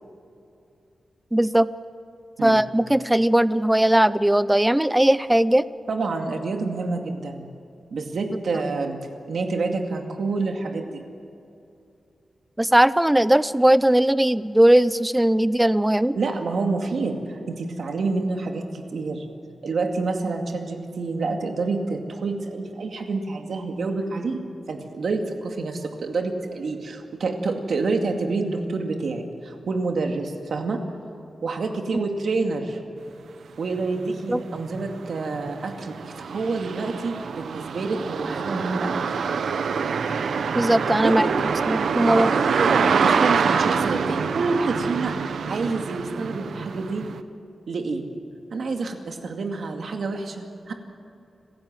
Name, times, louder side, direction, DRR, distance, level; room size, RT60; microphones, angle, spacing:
voice 1, 1.3-1.7 2.4-5.7 12.6-16.2 34.3-34.4 40.6-41.3 41.7-42.3, right 1 dB, 10° right, 16 dB, 0.5 m, -19 dB
voice 2, 5.9-7.5 7.9-9.0 9.3-11.0 16.2-19.3 19.6-30.8 31.4-32.8 33.6-39.1 41.0-41.4 42.0-45.2 45.5-47.0 47.7-48.0 48.5-50.7, right 3 dB, 65° right, 4 dB, 2.2 m, -28 dB
sound 1, 33.8-33.9 34.3-47.2, right 6 dB, 85° right, 0.9 m, -25 dB
27.0 x 15.0 x 7.7 m, 2.6 s
wide cardioid pair, 150°, 0 cm